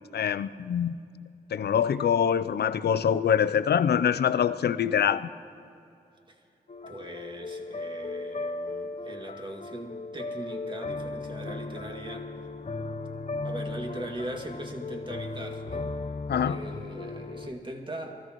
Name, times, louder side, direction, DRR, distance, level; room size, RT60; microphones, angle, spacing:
voice 1, 0.1-1.0 1.5-5.3 16.3-16.6, left 8 dB, 65° left, 14 dB, 0.5 m, -24 dB
sound 1, 6.7-17.5, left 3 dB, 45° left, 0.8 m, -36 dB
voice 2, 6.9-12.3 13.4-15.9 16.4-18.2, right 1 dB, 25° right, 2 dB, 2.2 m, -40 dB
23.5 x 13.5 x 3.0 m, 2.6 s
supercardioid pair, 40°, 18 cm